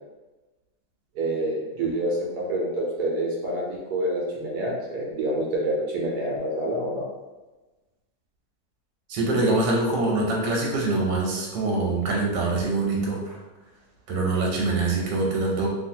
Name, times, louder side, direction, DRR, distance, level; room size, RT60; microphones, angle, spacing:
voice 1, 1.1-7.0, right 1 dB, 70° right, -3 dB, 1.0 m, -27 dB
voice 2, 9.1-13.4 14.1-15.7, right 2 dB, 90° right, -2 dB, 1.3 m, -24 dB
2.9 x 2.5 x 2.6 m, 1.2 s
omnidirectional pair, 1.9 m